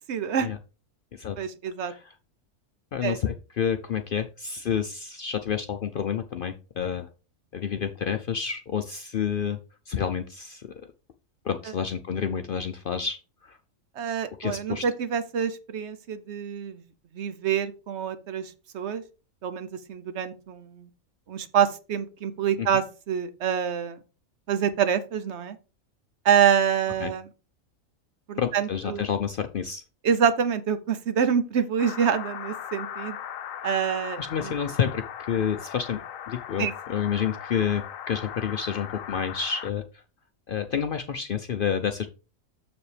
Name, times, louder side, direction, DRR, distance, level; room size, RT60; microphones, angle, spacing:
voice 1, 0.1-0.5 1.4-1.9 3.0-3.2 14.0-16.8 17.1-19.0 19.4-20.9 21.3-24.0 24.5-25.6 26.2-27.3 28.3-29.1 30.0-33.2 33.6-34.5 36.6-36.7, right 8 dB, 65° right, 11 dB, 0.9 m, -26 dB
voice 2, 2.9-7.1 7.5-9.6 9.9-10.7 11.4-13.6 14.4-14.8 22.6-22.7 27.0-27.1 28.4-29.8 34.2-39.8 40.5-42.1, left 7 dB, 60° left, 8 dB, 0.6 m, -29 dB
sound 1, 31.8-39.7, left 9 dB, 85° left, 1.0 m, -38 dB
7.1 x 6.9 x 3.3 m, 0.33 s
omnidirectional pair, 1.4 m